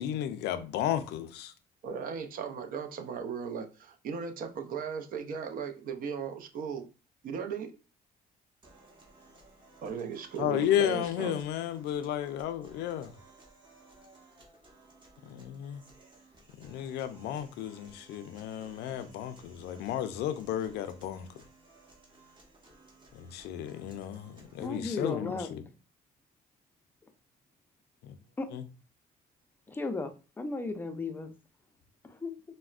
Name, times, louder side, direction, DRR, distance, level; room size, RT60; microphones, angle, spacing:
voice 1, 0.0-1.5 10.4-13.1 15.2-15.8 16.6-21.3 23.1-25.6 28.0-28.2 28.5-28.6, left 10 dB, 80° left, 0.4 m, -33 dB
voice 2, 1.8-6.9 7.2-7.8 9.8-11.3, right 6 dB, 55° right, 0.5 m, -37 dB
sound 1, 8.6-24.6, right 3 dB, 30° right, 1.0 m, -58 dB
voice 3, 24.6-25.5 28.4-28.5 29.7-31.3 32.0-32.3, left 3 dB, 10° left, 0.4 m, -35 dB
4.0 x 2.1 x 2.4 m
cardioid pair, 110°, 17 cm